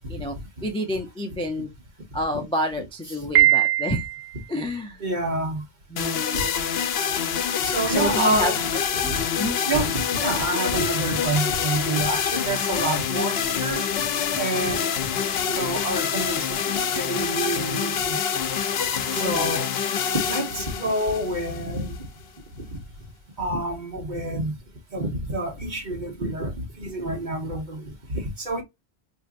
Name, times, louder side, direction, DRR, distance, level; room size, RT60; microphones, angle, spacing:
voice 1, 0.6-1.7 2.1-4.1 4.5-5.0 5.9-6.5 7.9-9.6 19.1-19.7, equal, 5° left, 0.4 m, -29 dB
Piano, 3.4-4.4, right 13 dB, 70° right, 0.9 m, -20 dB
voice 2, 5.0-5.7 6.3-6.4 7.6-8.7 9.1-9.2 9.4-13.8 14.3-14.9 15.5-18.2 19.1-19.7 20.2-22.1 22.5-22.6 23.4-24.6 24.9-28.6, right 2 dB, 45° right, 1.2 m, -28 dB
sound 1, 6.0-22.0, left 7 dB, 70° left, 0.8 m, -26 dB
4.3 x 2.7 x 2.4 m
omnidirectional pair, 1.1 m